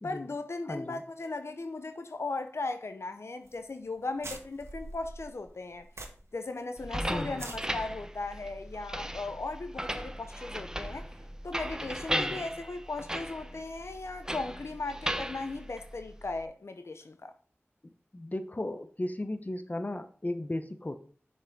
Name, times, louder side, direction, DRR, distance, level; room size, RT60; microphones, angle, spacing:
voice 1, 0.0-5.9 6.3-11.1 11.4-17.3, left 3 dB, 80° left, 0.6 m, -37 dB
voice 2, 0.7-1.0 7.1-7.4 12.1-12.4 18.1-21.0, left 1 dB, 40° left, 0.9 m, -35 dB
sound 1, 3.5-3.6 3.9-4.0 4.2-6.5 6.8-6.9 7.3-7.6, right 2 dB, 85° right, 1.2 m, -43 dB
sound 2, 6.8-16.4, equal, 15° right, 0.7 m, -37 dB
7.0 x 5.3 x 5.2 m
wide cardioid pair, 45°, 4 cm